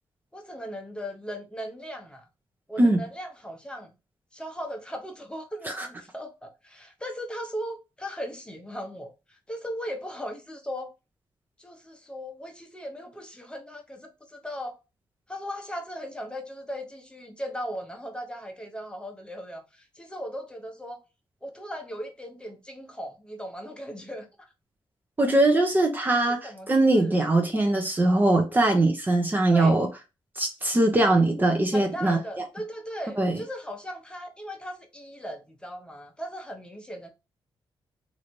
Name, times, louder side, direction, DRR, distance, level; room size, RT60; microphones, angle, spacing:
voice 1, 0.3-2.3 2.7-3.9 4.3-10.9 11.6-14.8 15.3-21.0 21.4-24.5 26.3-27.2 29.5-29.8 31.7-37.1, equal, 10° left, 0.7 m, -38 dB
voice 2, 25.2-26.4 26.7-29.9 30.4-32.2 33.2-33.3, right 2 dB, 20° right, 0.6 m, -21 dB
3.1 x 2.6 x 3.0 m
wide cardioid pair, 115°, 9 cm